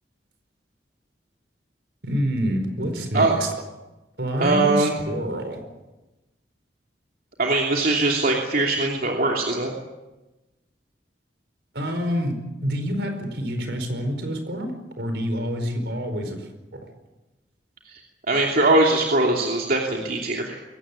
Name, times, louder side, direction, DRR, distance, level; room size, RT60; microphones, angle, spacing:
voice 1, 2.0-3.5 4.2-5.6 11.7-16.9, equal, 75° right, 7 dB, 4.8 m, -27 dB
voice 2, 4.4-4.9 7.4-9.7 17.9-18.0 18.3-20.6, right 2 dB, 55° right, 0 dB, 2.9 m, -21 dB
23.0 x 17.5 x 9.9 m, 1.1 s
head